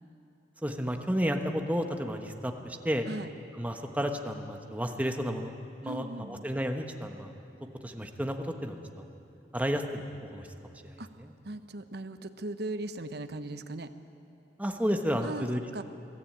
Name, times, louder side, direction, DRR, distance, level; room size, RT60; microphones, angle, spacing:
voice 1, 0.6-3.0 3.5-5.5 5.8-7.3 7.8-9.1 9.5-10.5 10.8-11.3 14.6-15.6, equal, 10° right, 4 dB, 1.2 m, -32 dB
voice 2, 5.8-6.5 11.0-11.1 11.4-13.9 15.2-15.8, right 2 dB, 65° right, 10 dB, 0.9 m, -38 dB
22.5 x 14.0 x 8.8 m, 2.8 s
head